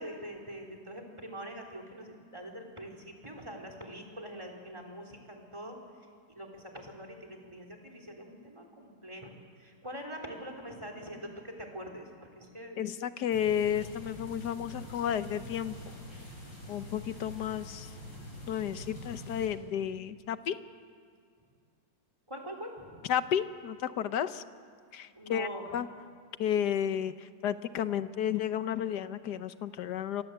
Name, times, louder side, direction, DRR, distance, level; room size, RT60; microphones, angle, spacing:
voice 1, 0.0-5.8 6.3-9.3 9.6-12.8 13.2-13.3 22.3-23.1 25.1-25.7, equal, 15° right, 3 dB, 3.6 m, -44 dB
voice 2, 12.8-16.0 16.7-17.9 18.5-20.6 23.1-24.4 24.9-25.9 26.4-30.2, left 9 dB, 65° left, 12 dB, 1.4 m, -32 dB
sound 1, 13.3-19.5, left 1 dB, 90° left, 6.3 m, -45 dB
27.0 x 25.0 x 8.1 m, 2.2 s
omnidirectional pair, 1.9 m